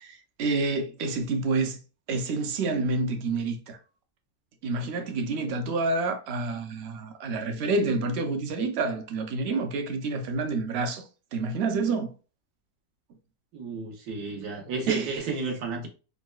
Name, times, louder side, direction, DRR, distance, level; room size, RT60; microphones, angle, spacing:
voice 1, 0.0-1.8 2.1-3.8 4.6-11.0 11.3-12.1 14.9-15.2, right 3 dB, 65° right, 0.6 m, -28 dB
voice 2, 13.5-15.9, right 4 dB, 85° right, 1.4 m, -32 dB
3.8 x 2.2 x 2.2 m
omnidirectional pair, 1.6 m